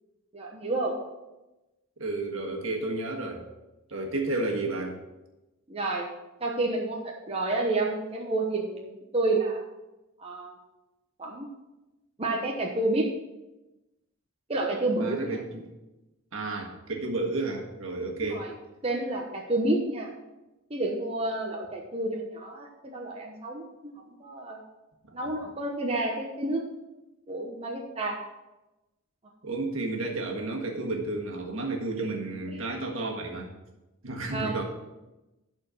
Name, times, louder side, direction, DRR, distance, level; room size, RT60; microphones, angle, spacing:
voice 1, 0.3-1.0 5.7-6.1 6.4-9.6 10.2-10.6 11.2-11.5 12.2-13.1 14.5-15.4 18.2-18.5 18.8-20.1 20.7-24.6 25.1-26.6 27.3-28.2 32.5-32.6 34.3-34.6, right 2 dB, 25° right, -1 dB, 0.9 m, -30 dB
voice 2, 2.0-3.4 3.9-5.0 14.9-15.5 16.3-18.5 25.1-25.3 29.4-33.5 34.0-34.6, right 2 dB, 70° right, 0 dB, 1.7 m, -32 dB
11.5 x 4.5 x 5.8 m, 1.0 s
head